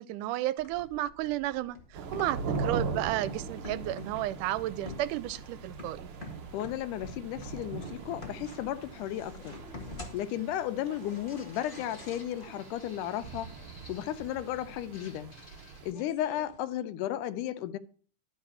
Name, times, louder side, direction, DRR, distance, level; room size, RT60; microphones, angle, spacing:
voice 1, 0.0-6.1, right 15 dB, 85° right, 2.1 m, -32 dB
sound 1, 0.6-16.6, left 2 dB, 25° left, 1.4 m, -49 dB
sound 2, 1.9-15.9, right 4 dB, 70° right, 1.2 m, -41 dB
voice 2, 2.1-2.5 6.5-9.6 10.1-13.5 13.9-15.3 15.8-17.8, left 12 dB, 85° left, 2.2 m, -34 dB
sound 3, 7.4-15.4, right 1 dB, 25° right, 2.2 m, -58 dB
11.5 x 4.8 x 5.5 m
omnidirectional pair, 3.6 m